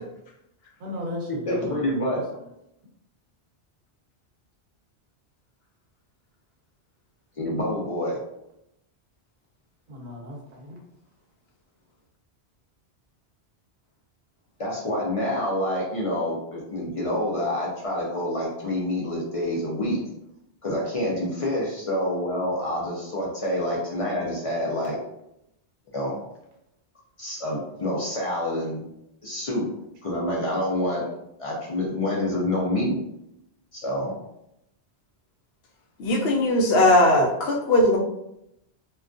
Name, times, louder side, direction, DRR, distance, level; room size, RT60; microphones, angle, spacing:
voice 1, 0.8-2.2 9.9-10.8 30.4-30.5, left 1 dB, 55° right, 0 dB, 0.7 m, -37 dB
voice 2, 1.5-2.2 7.4-8.2 14.6-20.0 20.6-25.0 25.9-26.2 27.2-28.8 29.2-29.7 30.0-31.1 31.4-33.0 33.7-34.1, left 1 dB, 55° left, -3 dB, 0.4 m, -27 dB
voice 3, 36.0-38.0, left 1 dB, 70° left, 1 dB, 0.8 m, -19 dB
2.2 x 2.2 x 2.5 m, 0.82 s
omnidirectional pair, 1.1 m